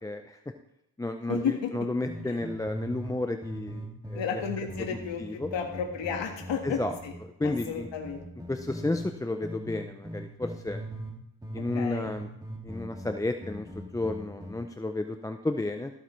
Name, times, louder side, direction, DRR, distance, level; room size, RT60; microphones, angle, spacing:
voice 1, 0.0-0.4 1.0-4.2 5.2-5.5 6.6-6.9 7.4-7.9 8.5-10.8 11.5-12.3 12.6-15.9, left 2 dB, 10° left, 6 dB, 0.4 m, -32 dB
voice 2, 1.3-1.9 2.2-2.4 4.1-7.1 7.4-8.3 11.6-12.1, left 7 dB, 65° left, 2 dB, 1.6 m, -33 dB
sound 1, 2.0-3.2 3.4-9.1 9.4-11.2 11.4-14.5, right 1 dB, 10° right, 2.1 m, -40 dB
14.0 x 8.2 x 3.1 m, 0.85 s
cardioid pair, 85°, 47 cm